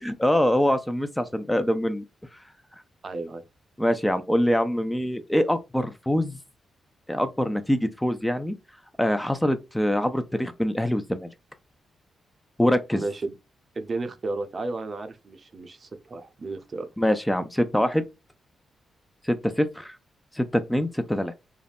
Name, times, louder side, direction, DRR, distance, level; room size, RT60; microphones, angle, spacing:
voice 1, 0.0-2.0 3.8-6.4 7.1-8.5 9.0-11.3 12.6-13.0 17.0-18.0 19.2-20.0 20.3-21.4, equal, 10° left, 0.4 m, -24 dB
voice 2, 3.0-3.4 12.9-13.4 13.8-16.9, right 3 dB, 45° right, 0.5 m, -33 dB
2.4 x 2.1 x 3.3 m
supercardioid pair, 55°, 0 cm